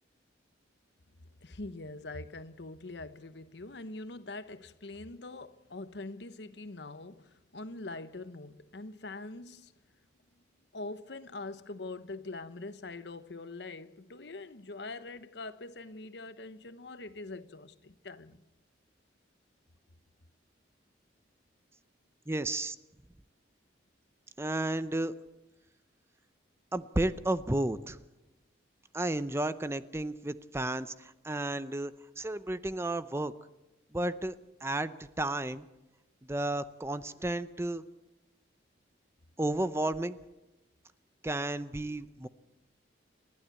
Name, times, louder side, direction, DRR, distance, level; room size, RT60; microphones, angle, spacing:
voice 1, 1.4-9.7 10.7-18.4, left 2 dB, 65° left, 1.0 m, -43 dB
voice 2, 22.3-22.8 24.4-25.1 26.7-28.0 28.9-33.3 33.9-35.6 36.3-37.8 39.4-40.2 41.2-42.3, right 1 dB, 15° right, 0.6 m, -32 dB
29.5 x 12.0 x 8.3 m
head